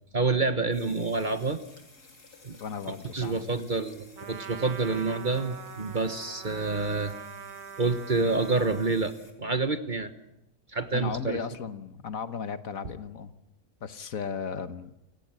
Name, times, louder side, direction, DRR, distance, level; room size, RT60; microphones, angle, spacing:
voice 1, 0.1-1.6 2.4-2.6 3.1-7.1 7.8-10.1 10.7-11.4, right 3 dB, 35° right, 10 dB, 1.3 m, -28 dB
sound 1, 0.7-9.3, left 3 dB, 90° left, 4.0 m, -55 dB
voice 2, 2.6-3.5 10.9-13.3 13.8-14.9, left 6 dB, 65° left, 11 dB, 1.6 m, -36 dB
Trumpet, 4.2-9.1, right 7 dB, 75° right, 1.7 m, -43 dB
29.0 x 17.5 x 8.9 m, 0.88 s
omnidirectional pair, 1.6 m